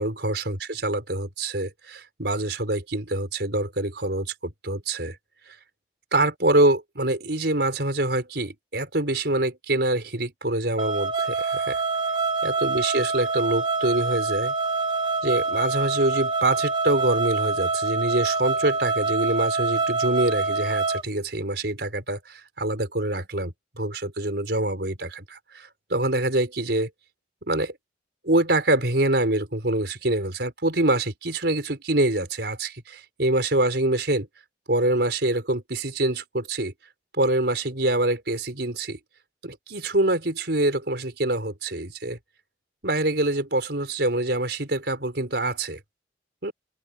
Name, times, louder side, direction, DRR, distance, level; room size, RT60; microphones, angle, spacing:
voice 1, 0.0-5.2 6.1-11.8 12.4-14.5 15.2-26.9 27.5-27.7 28.2-34.3 34.7-36.7 37.1-39.0 39.4-42.2 42.8-45.8 46.4-46.5, right 2 dB, 70° right, 4.5 m, -25 dB
sound 1, 10.8-21.0, right 4 dB, 30° right, 3.8 m, -25 dB
open air
head